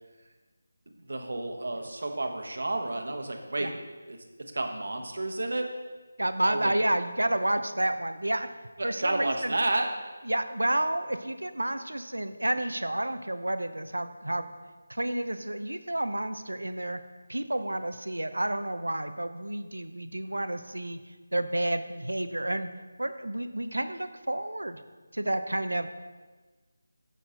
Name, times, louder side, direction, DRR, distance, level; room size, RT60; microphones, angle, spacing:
voice 1, 1.0-3.7 4.1-4.2 4.5-5.7 6.4-6.7 8.8-9.9, right 2 dB, 65° right, 4 dB, 1.1 m, -31 dB
voice 2, 6.2-8.5 8.8-9.6 10.3-14.5 14.9-17.0 17.3-21.0 21.3-22.7 23.0-24.8 25.1-25.9, right 1 dB, 85° right, 10 dB, 0.6 m, -30 dB
9.1 x 6.1 x 3.8 m, 1.3 s
figure-of-eight pair, 160°, 0 cm